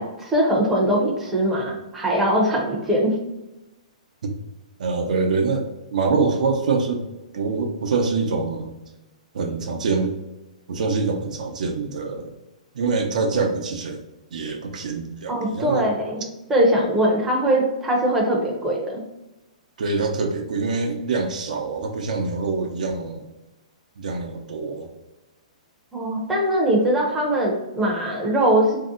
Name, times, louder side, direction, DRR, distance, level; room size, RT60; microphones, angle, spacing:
voice 1, 0.0-3.1 15.3-16.2 16.5-19.0 25.9-28.8, right 1 dB, 5° right, -3 dB, 0.5 m, -21 dB
voice 2, 4.8-7.0 7.3-8.7 9.3-10.2 10.7-12.3 12.7-14.0 14.3-16.0 19.8-23.2 24.0-24.9, right 4 dB, 75° right, 3 dB, 0.5 m, -25 dB
2.6 x 2.1 x 3.7 m, 0.98 s
hypercardioid pair, 160°, 4 cm